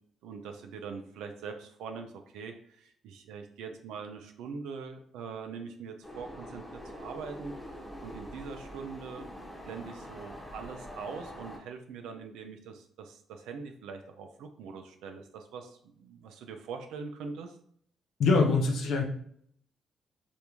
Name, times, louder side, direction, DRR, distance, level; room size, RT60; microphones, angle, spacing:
voice 1, 0.2-7.5 8.0-9.2 9.7-17.6, right 5 dB, 90° right, 5 dB, 0.4 m, -42 dB
sound 1, 6.0-11.6, equal, 5° left, 0.9 m, -44 dB
voice 2, 18.2-19.0, left 4 dB, 75° left, 2 dB, 0.5 m, -24 dB
3.4 x 2.5 x 2.9 m, 0.64 s
cardioid pair, 90°, 0 cm